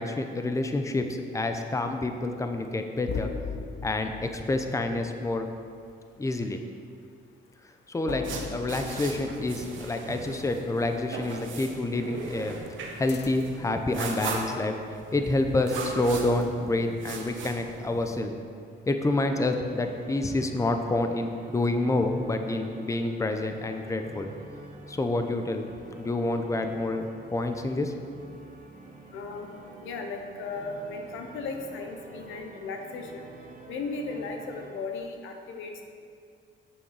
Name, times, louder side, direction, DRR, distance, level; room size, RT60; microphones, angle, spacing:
voice 1, 0.0-3.3 3.8-5.5 6.2-6.6 7.9-12.6 13.0-14.8 15.1-18.3 18.9-24.3 24.9-25.6 26.0-27.9, left 2 dB, 15° left, 6 dB, 0.7 m, -28 dB
sound 1, 3.1-5.8 8.1-10.7 13.1-13.7, left 6 dB, 60° left, 0.6 m, -40 dB
sound 2, 8.2-18.2, right 3 dB, 75° right, 1.3 m, -38 dB
sound 3, 19.1-34.7, right 3 dB, 45° right, 1.2 m, -48 dB
voice 2, 29.1-29.5 29.8-33.3 33.7-35.8, left 3 dB, 90° left, 4 dB, 1.0 m, -36 dB
8.8 x 7.0 x 4.8 m, 2.2 s
cardioid pair, 90°, 20 cm